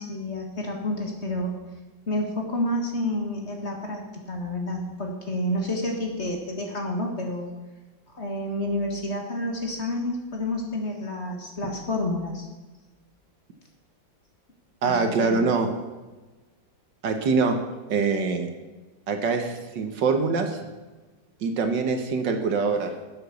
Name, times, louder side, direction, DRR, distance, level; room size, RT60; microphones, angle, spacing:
voice 1, 0.0-1.5 2.1-7.5 8.1-12.5 14.8-15.5, left 1 dB, 35° left, 2 dB, 2.0 m, -29 dB
voice 2, 14.8-15.7 17.0-17.6 17.9-18.5 19.1-20.6 21.4-22.9, right 4 dB, 70° right, 6 dB, 1.9 m, -24 dB
12.0 x 8.3 x 7.0 m, 1.2 s
omnidirectional pair, 2.1 m